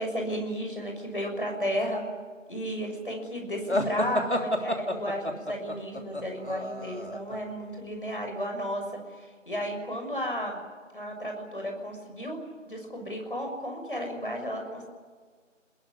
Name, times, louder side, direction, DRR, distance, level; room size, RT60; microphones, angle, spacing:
voice 1, 0.0-2.0 2.5-10.6 10.9-12.4 12.6-14.9, equal, 45° left, 2 dB, 6.6 m, -33 dB
sound 1, 3.7-7.4, equal, 60° left, 3.2 m, -30 dB
27.0 x 21.0 x 9.9 m, 1.5 s
figure-of-eight pair, 175°, 38 cm